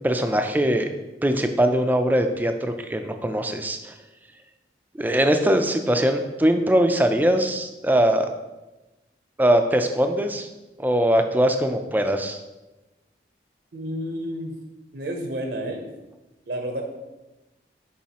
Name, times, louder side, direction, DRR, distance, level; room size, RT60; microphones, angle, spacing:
voice 1, 0.0-0.9 1.2-3.9 5.0-8.3 9.4-10.5 10.8-12.4, right 1 dB, 10° right, 6 dB, 0.4 m, -21 dB
voice 2, 13.7-14.6 14.9-15.9 16.5-16.8, equal, 65° right, 3 dB, 0.7 m, -30 dB
7.1 x 4.6 x 2.9 m, 1.1 s
head